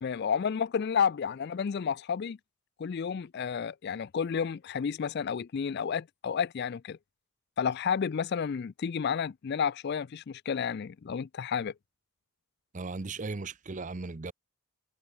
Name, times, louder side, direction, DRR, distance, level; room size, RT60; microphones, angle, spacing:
voice 1, 0.0-2.4 2.8-7.0 7.6-11.7, left 7 dB, 50° left, 0.3 m, -31 dB
voice 2, 12.7-14.3, right 3 dB, 35° right, 0.6 m, -37 dB
head